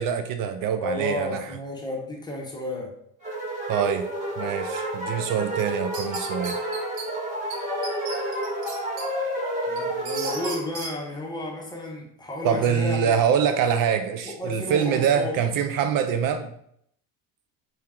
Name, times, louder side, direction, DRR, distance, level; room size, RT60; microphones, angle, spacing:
voice 1, 0.0-1.4 3.7-4.1 4.4-6.6 12.4-16.5, right 8 dB, 60° right, 8 dB, 0.5 m, -24 dB
voice 2, 0.8-2.9 9.7-13.2 14.2-15.4, left 1 dB, 10° left, -1 dB, 1.0 m, -32 dB
sound 1, 3.2-10.6, right 1 dB, 20° right, 1.7 m, -30 dB
sound 2, 5.6-7.1 7.5-7.6 7.8-9.1 9.5-10.9, right 4 dB, 80° right, 0.9 m, -36 dB
4.5 x 2.9 x 3.6 m, 0.70 s
cardioid pair, 125°, 37 cm